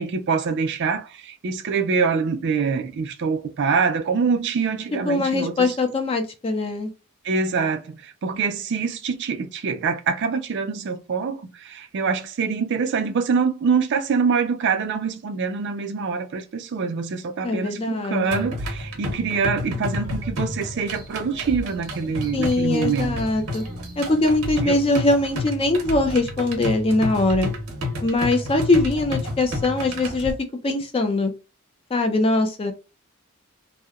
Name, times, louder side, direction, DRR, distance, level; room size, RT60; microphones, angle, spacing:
voice 1, 0.0-5.8 7.2-23.3 24.6-24.8, right 5 dB, 55° right, 0.4 m, -25 dB
voice 2, 5.1-6.9 17.4-18.4 22.3-23.6 24.0-27.5 28.0-30.3 30.6-31.3 31.9-32.7, left 2 dB, 25° left, 0.4 m, -22 dB
sound 1, 18.3-30.3, left 1 dB, 85° right, 0.8 m, -30 dB
2.8 x 2.0 x 2.3 m
head